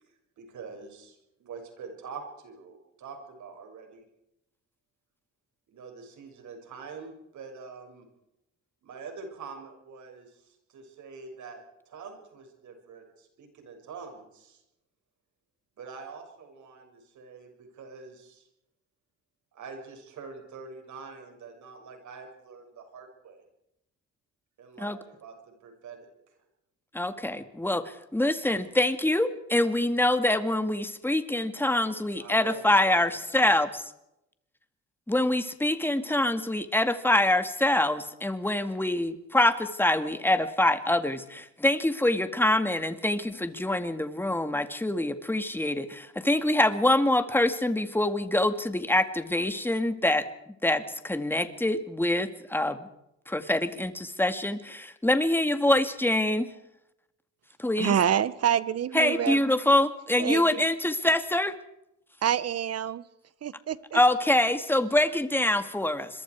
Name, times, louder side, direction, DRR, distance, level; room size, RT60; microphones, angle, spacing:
voice 1, 0.4-4.0 5.7-8.1 8.8-10.3 10.7-14.6 15.8-18.4 19.5-23.4 24.6-26.0 32.2-33.1, right 5 dB, 70° right, 4 dB, 6.7 m, -45 dB
voice 2, 26.9-33.8 35.1-52.9 53.3-56.5 57.6-57.9 58.9-61.5 63.9-66.1, left 1 dB, 5° left, 10 dB, 2.1 m, -25 dB
voice 3, 57.8-59.4 60.2-60.6 62.2-63.0 63.4-64.0, right 9 dB, 55° right, 17 dB, 1.3 m, -27 dB
26.5 x 23.0 x 4.8 m, 0.85 s
cardioid pair, 90°, 30 cm